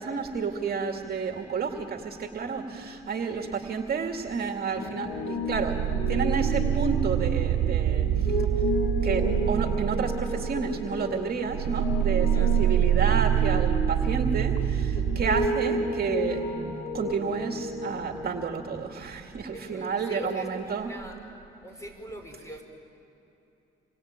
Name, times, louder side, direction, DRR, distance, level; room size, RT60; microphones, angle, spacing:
voice 1, 0.0-5.8 6.1-8.5 9.0-16.4 16.9-20.9, right 5 dB, 50° right, 4 dB, 2.4 m, -30 dB
Piano, 4.7-18.4, left 2 dB, 50° left, 4.9 m, -32 dB
sound 1, 5.5-11.1 11.5-15.5, right 11 dB, 80° right, 0.7 m, -26 dB
voice 2, 12.3-12.6 19.5-21.2 21.6-22.6, equal, 15° left, 3 dB, 5.6 m, -41 dB
27.5 x 23.0 x 9.0 m, 2.9 s
cardioid pair, 90°, 20 cm